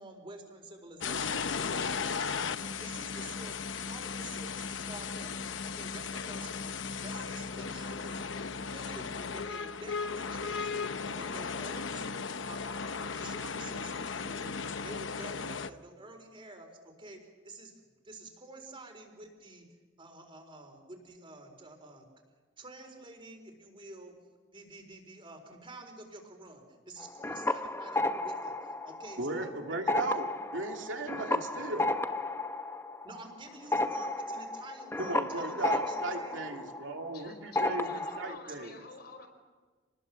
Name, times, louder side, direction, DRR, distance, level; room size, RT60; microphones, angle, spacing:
voice 1, 0.0-3.6 3.9-5.3 5.6-6.7 7.0-8.3 8.6-14.5 14.8-19.7 20.0-22.1 22.6-24.1 24.5-30.0 31.7-31.9 33.0-36.7, right 2 dB, 30° right, 4 dB, 4.4 m, -49 dB
sound 1, 1.0-15.7, left 5 dB, 85° left, 0.9 m, -36 dB
sound 2, 27.0-29.5 29.8-37.2 37.6-38.4, left 2 dB, 15° left, 1.0 m, -33 dB
voice 2, 29.2-31.8 35.0-38.8, right 2 dB, 80° right, 3 dB, 2.8 m, -36 dB
voice 3, 37.1-39.3, left 4 dB, 60° left, 5 dB, 4.8 m, -49 dB
28.5 x 20.0 x 7.4 m, 1.4 s
head